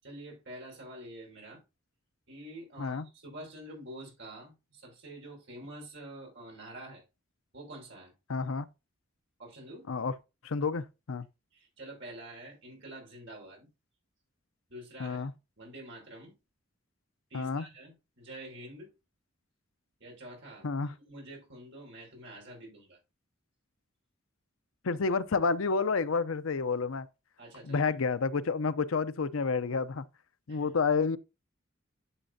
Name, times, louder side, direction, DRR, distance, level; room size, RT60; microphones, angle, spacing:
voice 1, 0.0-1.6 2.3-7.0 7.5-8.1 9.4-9.9 11.5-13.7 14.7-15.3 15.6-16.3 17.3-18.9 20.0-20.7 21.1-23.0 27.4-27.9 30.5-30.7, right 1 dB, 60° right, 5.7 m, -47 dB
voice 2, 8.3-8.7 9.9-10.1 10.4-11.3 15.0-15.3 17.3-17.6 20.6-20.9 24.8-27.1 27.6-30.0 30.5-31.2, left 4 dB, 85° left, 0.6 m, -29 dB
11.0 x 7.1 x 2.7 m
head